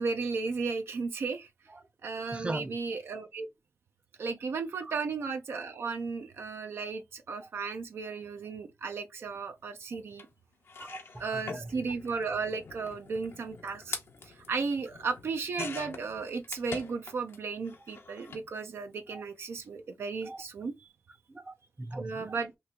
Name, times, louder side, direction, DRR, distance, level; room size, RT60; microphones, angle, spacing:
voice 1, 0.0-1.5 2.0-3.5 4.2-10.3 11.2-14.0 14.2-20.9 21.9-22.5, right 4 dB, 85° right, 0.4 m, -35 dB
voice 2, 2.2-2.8 4.8-5.0 10.8-11.7 19.1-19.2 20.3-20.4 21.3-22.3, right 2 dB, 25° right, 0.6 m, -40 dB
sound 1, 10.2-10.3 10.6-17.4 17.6-18.5 19.5-19.6 19.9-20.0, left 4 dB, 80° left, 0.6 m, -44 dB
3.0 x 2.4 x 3.5 m
cardioid pair, 60°, 4 cm